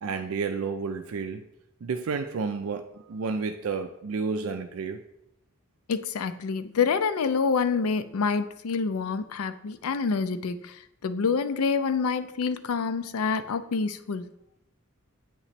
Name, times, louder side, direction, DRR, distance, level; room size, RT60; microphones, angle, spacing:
voice 1, 0.0-1.5 1.8-5.0, right 5 dB, 75° right, 0.4 m, -31 dB
voice 2, 5.9-14.3, left 5 dB, 90° left, 0.4 m, -27 dB
8.6 x 3.0 x 4.2 m
head